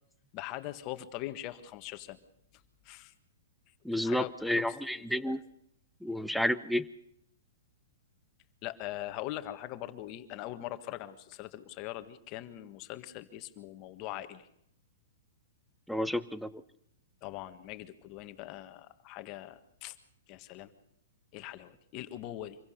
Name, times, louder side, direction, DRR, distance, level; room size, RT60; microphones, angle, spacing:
voice 1, 0.3-2.2 2.8-3.1 4.0-5.3 8.6-14.5 17.2-19.9 20.3-20.7 21.3-22.6, left 14 dB, 35° left, 9 dB, 1.7 m, -42 dB
voice 2, 3.8-5.4 6.0-6.8 15.9-16.6, left 1 dB, ahead, 11 dB, 0.8 m, -31 dB
25.5 x 16.0 x 6.7 m, 0.71 s
hypercardioid pair, 145°, 0 cm